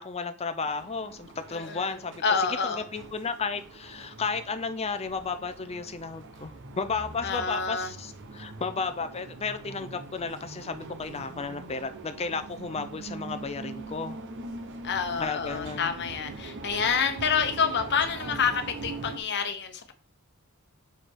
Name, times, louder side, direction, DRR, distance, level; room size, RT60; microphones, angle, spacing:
voice 1, 0.0-2.2 2.6-14.2 15.2-15.9, left 4 dB, 30° left, 0.5 m, -33 dB
sound 1, 0.6-19.2, right 3 dB, 55° right, 1.0 m, -42 dB
voice 2, 1.5-2.8 7.2-7.9 14.8-19.9, left 6 dB, 50° left, 1.0 m, -28 dB
5.7 x 5.1 x 4.6 m
head